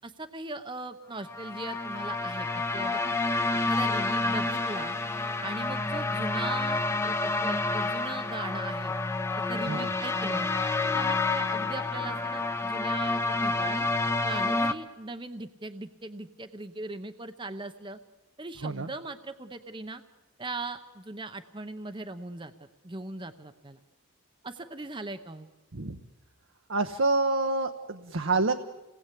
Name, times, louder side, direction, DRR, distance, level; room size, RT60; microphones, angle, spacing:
voice 1, 0.0-3.1 3.7-5.0 5.4-8.9 9.4-10.5 10.9-13.9 14.2-18.0 18.4-20.0 20.4-22.5 22.8-23.8 24.4-25.5, right 2 dB, 20° right, 9 dB, 0.8 m, -39 dB
sound 1, 1.2-14.7, left 3 dB, 10° left, 0.8 m, -29 dB
voice 2, 26.7-28.5, right 3 dB, 60° right, 7 dB, 0.9 m, -27 dB
28.0 x 19.0 x 8.4 m, 1.1 s
head